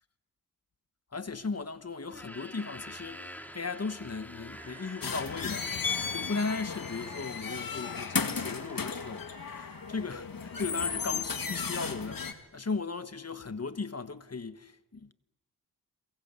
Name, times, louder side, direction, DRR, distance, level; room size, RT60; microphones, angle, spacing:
voice 1, 1.1-5.7 6.1-15.1, left 4 dB, 45° left, 1.2 m, -37 dB
sound 1, 2.0-9.3, equal, 5° left, 2.6 m, -48 dB
sound 2, 4.5-5.4 5.7-6.6 6.9-7.7 8.1-12.1, equal, 90° left, 4.9 m, -55 dB
sound 3, 5.0-12.3, left 5 dB, 70° left, 2.2 m, -34 dB
29.5 x 23.0 x 8.2 m
wide cardioid pair, 80°, 36 cm